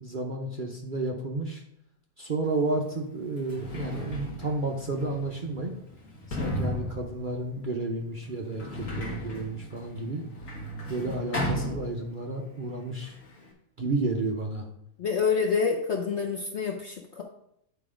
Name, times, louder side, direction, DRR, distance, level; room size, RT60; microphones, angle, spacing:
voice 1, 0.0-1.6 2.2-5.7 6.3-10.2 10.9-13.2 13.8-14.7, right 2 dB, 55° right, 0 dB, 0.5 m, -31 dB
Sliding door, 2.6-2.7 3.3-12.4 12.7-13.5, left 1 dB, 45° left, 1.9 m, -36 dB
voice 2, 15.0-17.2, left 5 dB, 60° left, 2 dB, 0.7 m, -27 dB
9.1 x 4.0 x 5.0 m, 0.76 s
omnidirectional pair, 2.0 m